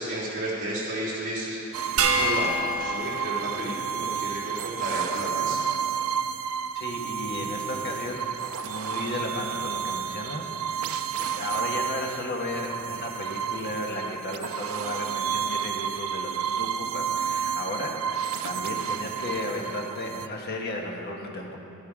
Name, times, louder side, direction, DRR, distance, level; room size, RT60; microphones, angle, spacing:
voice 1, 0.0-1.6 1.9-5.6, right 1 dB, 40° right, -8 dB, 3.5 m, -32 dB
sound 1, 1.7-20.3, right 7 dB, 70° right, 0.5 m, -31 dB
sound 2, 2.0-4.5, right 2 dB, 85° right, 1.3 m, -28 dB
voice 2, 6.7-8.2 8.6-11.0 11.3-21.6, left 1 dB, 45° left, 0 dB, 1.4 m, -34 dB
12.0 x 11.0 x 4.9 m, 2.7 s
head